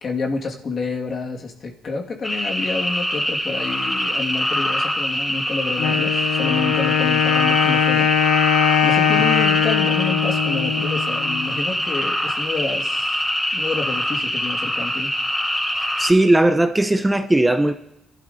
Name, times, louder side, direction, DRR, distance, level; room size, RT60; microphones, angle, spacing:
voice 1, 0.0-8.1 8.8-13.3 13.5-15.1, left 4 dB, 50° left, 1.9 m, -28 dB
sound 1, 2.2-16.1, equal, 15° left, 3.5 m, -24 dB
Wind instrument woodwind instrument, 5.8-11.5, left 8 dB, 90° left, 1.0 m, -20 dB
voice 2, 16.0-17.7, right 1 dB, 10° right, 0.7 m, -17 dB
28.0 x 12.0 x 2.7 m
cardioid pair, 90°, 0 cm